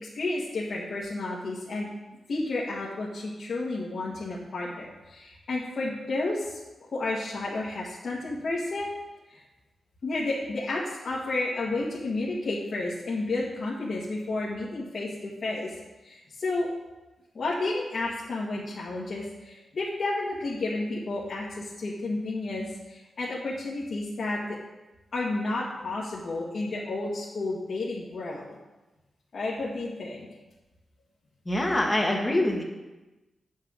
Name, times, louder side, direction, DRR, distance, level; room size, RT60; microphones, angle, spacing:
voice 1, 0.0-1.9 2.3-8.9 9.3-9.4 10.0-15.7 16.0-16.7 17.4-24.6 25.1-28.5 29.3-30.3, left 2 dB, 55° left, -6 dB, 1.6 m, -31 dB
voice 2, 31.5-32.6, left 1 dB, 10° left, 0 dB, 1.4 m, -24 dB
8.9 x 5.8 x 6.5 m, 1.1 s
wide cardioid pair, 160°, 0 cm